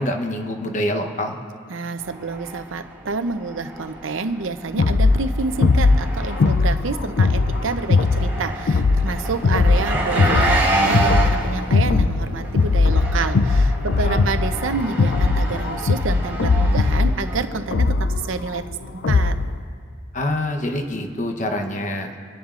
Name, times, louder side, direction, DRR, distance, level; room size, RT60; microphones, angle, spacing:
voice 1, 0.0-1.4 14.0-14.3 20.1-22.1, left 1 dB, 40° left, 4 dB, 0.9 m, -25 dB
voice 2, 1.7-18.6 19.1-19.4, right 4 dB, 85° right, 9 dB, 0.7 m, -28 dB
Engine, 2.0-17.8, right 2 dB, 10° right, 3.3 m, -29 dB
sound 1, 4.8-19.6, left 3 dB, 70° left, 0.4 m, -19 dB
26.5 x 10.5 x 2.5 m, 2.5 s
head